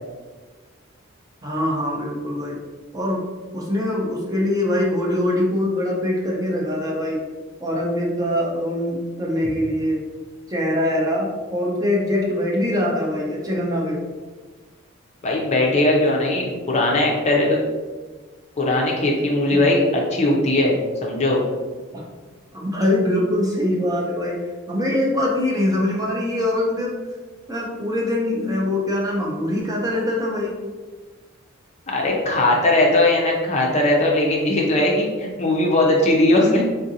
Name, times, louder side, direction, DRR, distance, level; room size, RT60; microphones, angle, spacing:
voice 1, 1.4-2.6 2.9-3.3 3.5-7.2 7.6-10.0 10.5-14.0 19.5-19.7 21.9-22.0 22.5-24.4 24.7-26.9 27.5-30.6, left 1 dB, 15° right, -3 dB, 0.5 m, -23 dB
voice 2, 15.2-17.6 18.6-21.4 31.9-36.6, left 1 dB, 30° left, -2 dB, 0.5 m, -19 dB
3.6 x 2.5 x 2.7 m, 1.3 s
head